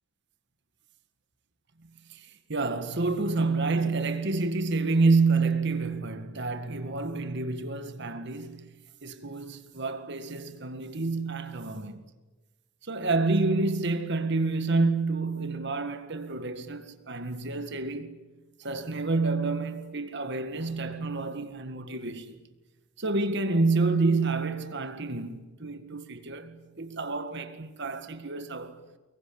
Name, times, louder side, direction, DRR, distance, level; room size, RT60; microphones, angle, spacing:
voice 1, 2.1-8.7 9.0-12.0 12.8-18.2 18.6-22.4 23.0-28.8, right 3 dB, 55° right, 1.9 m, -28 dB
25.0 x 22.5 x 8.7 m
head